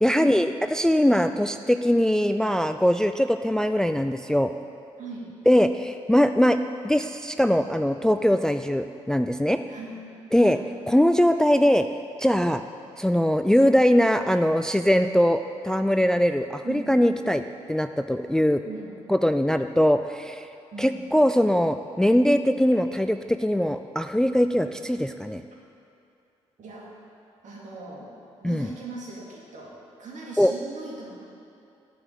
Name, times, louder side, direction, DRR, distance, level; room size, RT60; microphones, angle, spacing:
voice 1, 0.0-4.5 5.5-6.6 6.8-9.6 10.3-10.6 10.9-11.9 12.2-12.6 13.0-17.4 17.7-18.6 19.1-20.5 20.8-25.4 28.4-28.7 30.4-30.5, equal, 5° left, 9 dB, 0.3 m, -21 dB
voice 2, 5.0-5.3 9.7-10.0 10.3-10.6 16.6-16.9 18.6-18.9 20.7-21.0 26.6-26.9 27.4-28.1 28.4-31.2, right 3 dB, 60° right, -3 dB, 2.1 m, -39 dB
8.8 x 5.1 x 7.8 m, 2.6 s
hypercardioid pair, 45°, 14 cm